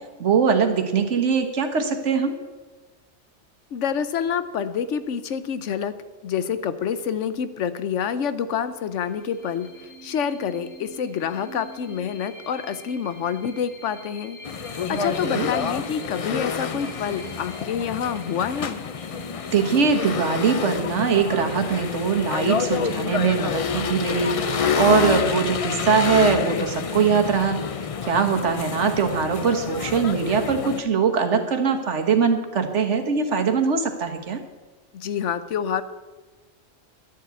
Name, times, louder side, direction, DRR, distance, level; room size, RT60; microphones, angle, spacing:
voice 1, 0.2-2.3 14.9-15.5 19.5-27.6 28.1-34.4, right 6 dB, 80° right, 5 dB, 1.6 m, -22 dB
voice 2, 3.7-5.9 6.2-14.4 14.7-18.8 34.9-35.8, left 7 dB, 90° left, 12 dB, 1.1 m, -27 dB
sound 1, 9.0-22.4, equal, 5° left, 3.1 m, -45 dB
sound 2, 14.4-30.8, left 6 dB, 45° left, 0.4 m, -28 dB
11.5 x 7.7 x 8.3 m, 1.2 s
omnidirectional pair, 1.2 m